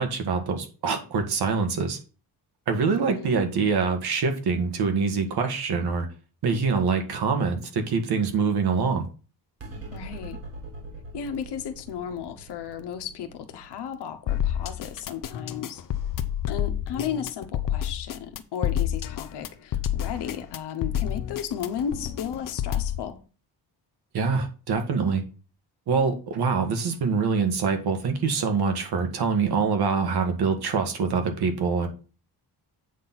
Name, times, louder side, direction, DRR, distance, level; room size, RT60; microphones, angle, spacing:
voice 1, 0.0-2.0 2.7-6.1 6.4-9.1 24.1-25.2 25.9-31.9, right 5 dB, 70° right, 1.7 m, -25 dB
voice 2, 2.9-3.4 9.9-10.4 11.1-15.8 16.5-23.2, left 8 dB, 80° left, 1.0 m, -34 dB
sound 1, 9.6-16.3, right 2 dB, 35° right, 1.7 m, -44 dB
sound 2, 14.3-23.0, left 10 dB, 55° left, 0.7 m, -29 dB
8.3 x 4.1 x 5.9 m
wide cardioid pair, 175°, 40 cm